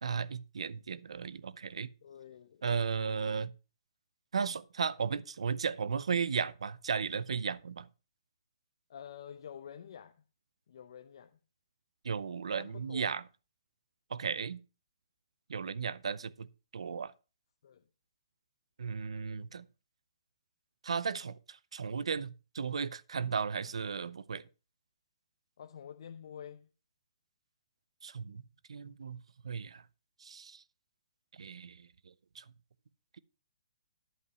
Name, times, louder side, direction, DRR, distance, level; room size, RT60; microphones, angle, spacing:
voice 1, 0.0-1.9 2.6-3.5 4.3-7.9 12.0-13.2 14.1-14.6 15.5-16.5 16.7-17.1 18.8-19.6 20.8-24.4 28.0-28.4 28.7-29.2 29.4-29.8 30.2-30.6 31.4-31.9 32.3-32.4, right 6 dB, 85° right, 0.7 m, -35 dB
voice 2, 2.0-2.6 8.9-10.2 10.7-11.4 12.6-13.2 17.6-17.9 25.6-26.7, left 8 dB, 55° left, 0.8 m, -48 dB
11.0 x 5.5 x 6.1 m
hypercardioid pair, 160°, 3 cm